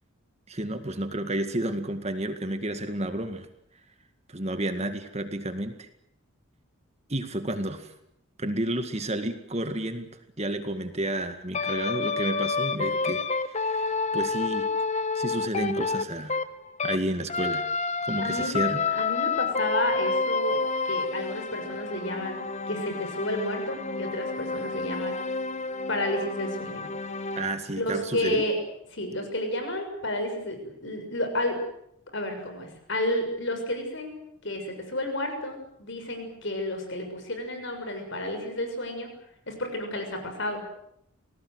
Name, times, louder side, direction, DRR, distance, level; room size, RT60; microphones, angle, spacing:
voice 1, 0.5-3.5 4.3-5.9 7.1-7.9 8.4-10.1 10.4-14.7 15.2-16.4 16.8-17.7 18.1-18.8 27.4-28.4, right 1 dB, 30° right, 8 dB, 2.0 m, -31 dB
sound 1, 11.5-17.0 17.3-27.6, left 4 dB, 30° left, 1.0 m, -29 dB
voice 2, 18.2-18.6 18.9-20.6 20.8-25.2 25.9-26.9 27.7-28.6 28.9-31.6 32.1-39.1 39.5-40.6, left 1 dB, 55° left, 6 dB, 6.6 m, -31 dB
28.0 x 19.0 x 8.1 m, 0.75 s
head